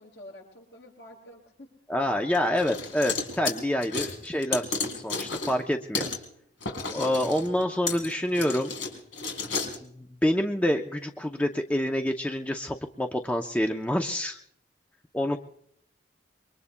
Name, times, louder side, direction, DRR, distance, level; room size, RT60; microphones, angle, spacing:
voice 1, 0.0-1.7, left 1 dB, 60° left, 0 dB, 5.9 m, -48 dB
voice 2, 1.9-6.1 6.9-8.7 9.8-14.4 15.1-15.4, left 1 dB, 10° left, 3 dB, 0.5 m, -27 dB
sound 1, 2.3-5.6 5.9-6.2 6.6-9.8, left 4 dB, 90° left, 4.2 m, -32 dB
27.5 x 23.0 x 2.2 m, 0.68 s
head